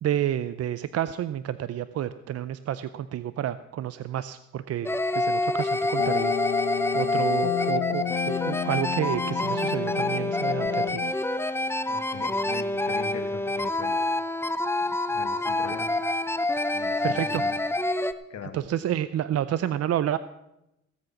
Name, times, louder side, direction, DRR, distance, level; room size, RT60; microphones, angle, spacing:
voice 1, 0.0-6.3 6.9-11.0 17.0-17.4 18.5-20.2, right 11 dB, 55° right, 14 dB, 0.5 m, -30 dB
sound 1, 4.9-18.1, left 2 dB, 10° left, 0.6 m, -27 dB
sound 2, 6.0-11.1, left 15 dB, 80° left, 0.6 m, -32 dB
voice 2, 11.9-14.0 14.9-15.9 16.7-17.6 18.3-18.6, left 6 dB, 60° left, 5 dB, 2.0 m, -41 dB
16.5 x 7.8 x 5.9 m, 0.90 s
cardioid pair, 90°, 30 cm